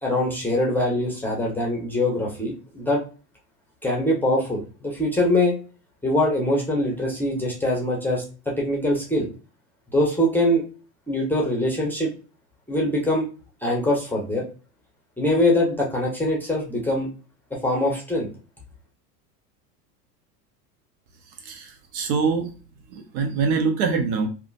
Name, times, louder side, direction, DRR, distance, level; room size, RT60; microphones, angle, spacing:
voice 1, 0.0-3.0 3.8-5.5 6.0-9.3 9.9-10.6 11.1-12.1 12.7-13.2 13.6-14.5 15.2-17.1 17.6-18.3, left 1 dB, 5° left, -2 dB, 0.8 m, -23 dB
voice 2, 21.4-22.5 22.9-24.3, right 5 dB, 60° right, 4 dB, 1.0 m, -24 dB
3.6 x 2.2 x 2.4 m, 0.35 s
hypercardioid pair, 95°, 49 cm